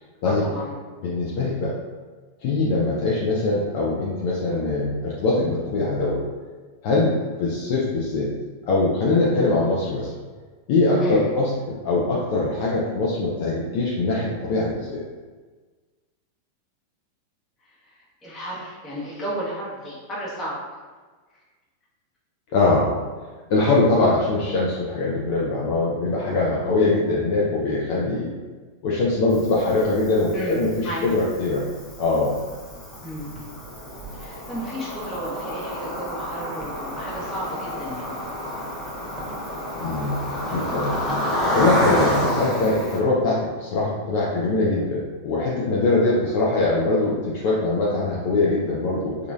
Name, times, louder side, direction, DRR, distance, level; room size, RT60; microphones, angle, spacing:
voice 1, 0.2-0.7 11.0-11.3 17.9-20.6 30.3-31.0 33.0-33.3 34.1-38.1 40.5-40.7, right 1 dB, 20° left, -6 dB, 1.0 m, -33 dB
voice 2, 1.0-1.7 2.4-6.2 6.8-8.3 8.7-10.1 10.7-15.0 22.5-22.9 23.5-28.3 28.8-31.6 32.0-32.4 39.8-41.0 41.5-49.3, left 2 dB, 45° left, -5 dB, 0.4 m, -22 dB
Cricket, 29.3-43.0, equal, 5° left, 0.7 m, -29 dB
2.9 x 2.3 x 2.3 m, 1.4 s
figure-of-eight pair, 90°, 0 cm